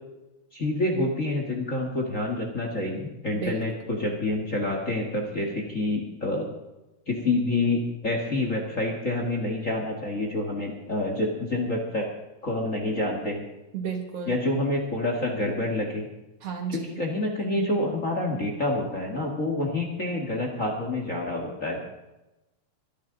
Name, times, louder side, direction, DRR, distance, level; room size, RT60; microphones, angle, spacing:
voice 1, 0.5-6.4 7.1-12.1 12.4-13.4 14.3-16.1 16.7-21.8, left 2 dB, 30° left, 1 dB, 1.7 m, -27 dB
voice 2, 3.3-3.6 13.7-14.3 16.4-17.0, right 6 dB, 60° right, 4 dB, 2.3 m, -33 dB
23.5 x 10.5 x 3.9 m, 0.99 s
omnidirectional pair, 3.5 m